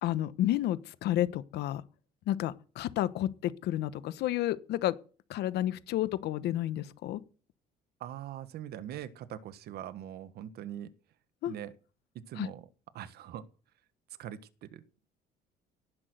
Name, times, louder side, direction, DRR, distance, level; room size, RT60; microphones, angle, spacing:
voice 1, 0.0-1.8 2.3-5.0 5.3-7.2 11.4-11.5 12.4-12.5, left 13 dB, 75° left, 1.2 m, -31 dB
voice 2, 8.0-10.9 11.5-11.8 12.1-12.7 12.9-13.5 14.2-14.8, right 11 dB, 70° right, 1.4 m, -42 dB
18.0 x 6.3 x 9.3 m
cardioid pair, 110°, 17 cm